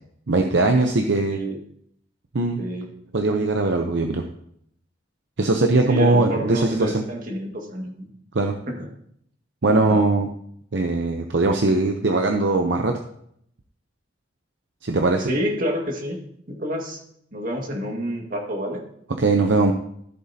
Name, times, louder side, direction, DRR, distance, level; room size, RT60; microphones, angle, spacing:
voice 1, 0.3-1.4 2.3-2.6 3.1-4.2 5.4-7.0 8.3-8.5 9.6-10.3 10.7-13.0 14.8-15.3 19.2-19.7, right 2 dB, 65° right, 4 dB, 0.7 m, -20 dB
voice 2, 1.3-1.6 2.6-2.9 5.9-8.1 8.7-8.9 9.7-10.0 15.3-16.2 16.5-17.0 17.3-18.8, equal, 45° right, 1 dB, 1.9 m, -28 dB
13.5 x 7.7 x 2.8 m, 0.70 s
head